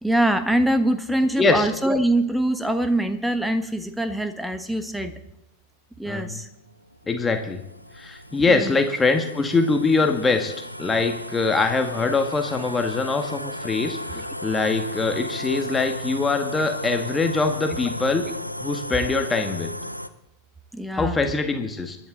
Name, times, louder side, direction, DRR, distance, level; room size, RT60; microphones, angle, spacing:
voice 1, 0.0-5.1 6.0-6.5 8.5-8.8 20.7-21.2, right 1 dB, 5° right, 9 dB, 1.3 m, -23 dB
voice 2, 1.3-1.7 6.0-6.4 7.1-7.6 8.0-10.5 10.8-18.3 18.6-19.7 20.9-22.0, left 3 dB, 15° left, 5 dB, 1.7 m, -23 dB
sound 1, 6.6-20.1, left 1 dB, 90° left, 0.7 m, -35 dB
25.0 x 11.0 x 3.9 m, 0.84 s
figure-of-eight pair, 90°, 0 cm